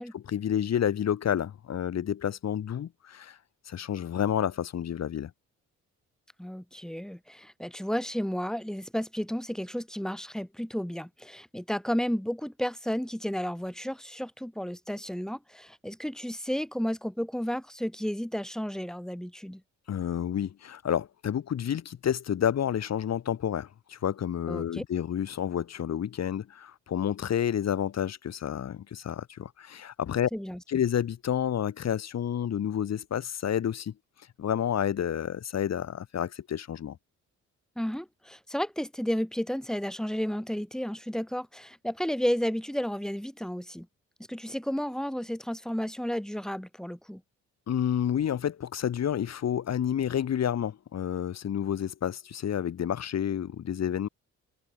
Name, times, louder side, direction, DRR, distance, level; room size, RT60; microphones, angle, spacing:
voice 1, 0.1-3.4 3.7-5.3 19.9-30.3 30.7-33.9 34.4-37.0 47.7-54.1, left 9 dB, 60° left, 4.0 m, -30 dB
voice 2, 6.4-19.6 24.5-24.8 30.3-30.6 37.8-43.9 44.3-47.2, equal, ahead, 4.1 m, -32 dB
cardioid pair, 90°, 30 cm